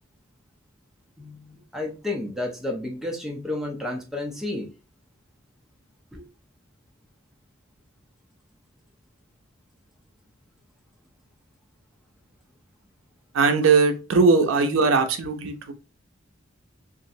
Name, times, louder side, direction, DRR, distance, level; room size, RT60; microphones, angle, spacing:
voice 1, 1.2-4.7 6.1-6.2, left 2 dB, ahead, 0 dB, 0.6 m, -31 dB
voice 2, 13.3-15.7, right 4 dB, 75° right, 7 dB, 0.5 m, -20 dB
2.9 x 2.5 x 2.5 m, 0.31 s
head